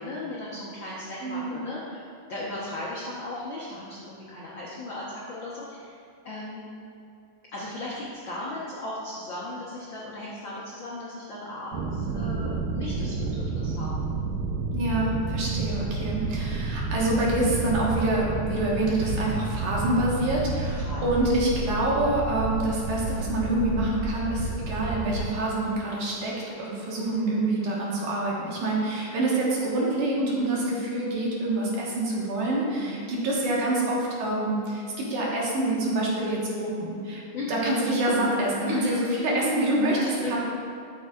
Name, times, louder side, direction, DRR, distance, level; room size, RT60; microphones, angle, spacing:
voice 1, 0.0-5.9 6.2-6.7 7.5-13.9 20.8-21.0 32.8-33.1 37.3-37.7 38.6-38.9 39.9-40.4, left 2 dB, 75° left, -6 dB, 1.1 m, -36 dB
voice 2, 1.2-1.7 14.7-37.2 37.5-40.4, right 1 dB, 70° right, -4 dB, 2.8 m, -26 dB
sound 1, 11.7-25.3, right 3 dB, 90° right, 2.2 m, -30 dB
12.5 x 7.2 x 2.4 m, 2.4 s
omnidirectional pair, 3.8 m